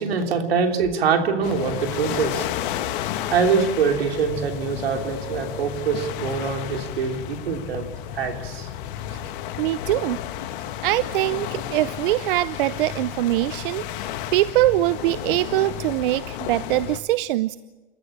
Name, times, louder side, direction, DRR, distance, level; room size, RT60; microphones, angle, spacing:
voice 1, 0.0-2.5 3.3-7.9 8.1-8.7, right 5 dB, 90° right, 4 dB, 3.3 m, -24 dB
sound 1, 1.4-17.0, left 11 dB, 60° left, 1.9 m, -32 dB
voice 2, 9.6-10.2 10.8-17.6, right 16 dB, 65° right, 16 dB, 0.7 m, -23 dB
29.0 x 14.0 x 8.8 m, 1.2 s
supercardioid pair, 130°, 29 cm